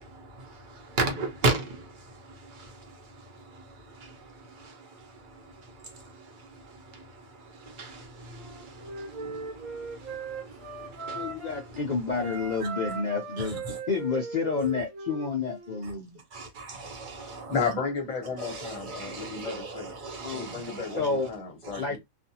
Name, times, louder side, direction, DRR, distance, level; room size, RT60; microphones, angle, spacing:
voice 1, 0.0-11.8 13.4-13.8 15.8-15.9 16.3-17.7 18.4-21.3 21.6-21.9, right 2 dB, 40° right, 0.9 m, -37 dB
Wind instrument woodwind instrument, 8.3-11.7 12.1-15.8, right 3 dB, 75° right, 1.2 m, -39 dB
voice 2, 11.1-16.2 16.7-16.8 20.2-21.3 21.8-22.0, left 4 dB, 80° left, 0.4 m, -30 dB
voice 3, 17.5-19.9 20.3-22.0, left 5 dB, 30° left, 0.9 m, -33 dB
2.5 x 2.4 x 2.7 m
omnidirectional pair, 1.4 m